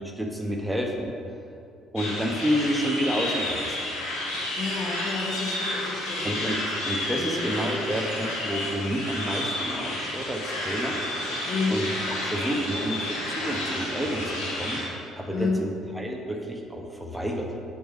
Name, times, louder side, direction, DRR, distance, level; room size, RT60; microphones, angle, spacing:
voice 1, 0.2-1.1 1.9-3.6 6.2-11.0 11.7-14.8 15.2-17.6, equal, 5° right, 1 dB, 1.3 m, -29 dB
sound 1, 2.0-14.8, left 1 dB, 70° left, 2.1 m, -31 dB
voice 2, 4.5-6.4 7.2-7.5 11.5-11.8 15.3-15.6, left 4 dB, 45° left, 0 dB, 1.2 m, -30 dB
6.9 x 5.4 x 6.3 m, 2.5 s
figure-of-eight pair, 50°, 0 cm